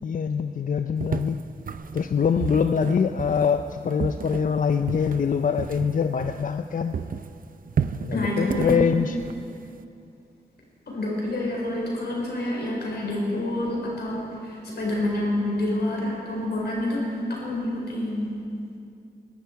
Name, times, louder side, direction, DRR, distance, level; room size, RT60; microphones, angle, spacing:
voice 1, 0.0-1.4 1.9-6.9 8.0-9.2, left 6 dB, 55° left, 8 dB, 0.5 m, -24 dB
sound 1, 1.0-6.7 6.9-9.8, right 6 dB, 55° right, 0.6 m, -32 dB
voice 2, 8.1-8.8 10.9-18.3, left 1 dB, 85° left, -3 dB, 4.7 m, -27 dB
21.5 x 12.0 x 4.6 m, 2.6 s
wide cardioid pair, 80°, 17 cm